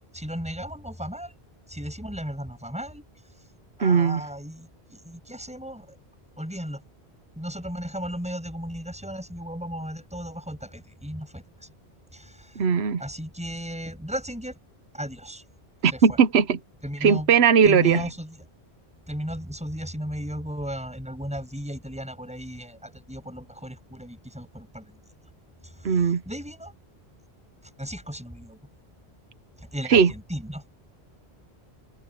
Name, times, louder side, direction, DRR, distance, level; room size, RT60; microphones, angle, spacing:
voice 1, 0.1-1.4 1.7-3.0 3.8-6.0 6.4-6.8 7.4-11.7 12.1-12.7 13.0-14.6 14.9-15.4 15.8-16.2 16.8-17.3 17.6-18.4 19.1-25.0 25.6-26.7 27.8-28.6 29.6-30.6, equal, 5° right, 7.6 m, -35 dB
voice 2, 3.8-4.2 12.6-13.0 15.8-16.6 17.0-18.1 25.8-26.2 29.9-30.1, right 6 dB, 75° right, 1.2 m, -19 dB
omnidirectional pair, 1.1 m